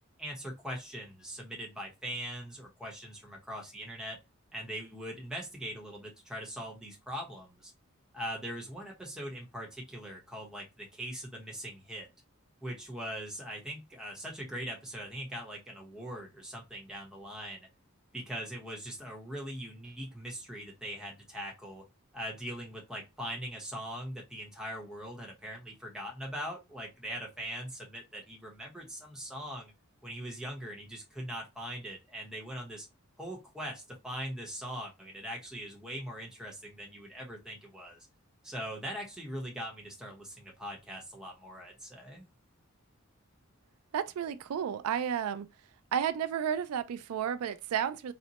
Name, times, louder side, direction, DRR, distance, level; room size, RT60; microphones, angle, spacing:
voice 1, 0.2-4.2 4.5-7.7 8.1-12.1 12.6-17.7 18.1-21.8 22.1-29.7 30.0-32.9 33.2-38.0 38.4-42.3, equal, 5° right, 0.8 m, -41 dB
voice 2, 43.9-45.5 45.9-48.1, right 8 dB, 85° right, 0.3 m, -32 dB
4.0 x 2.1 x 2.8 m
head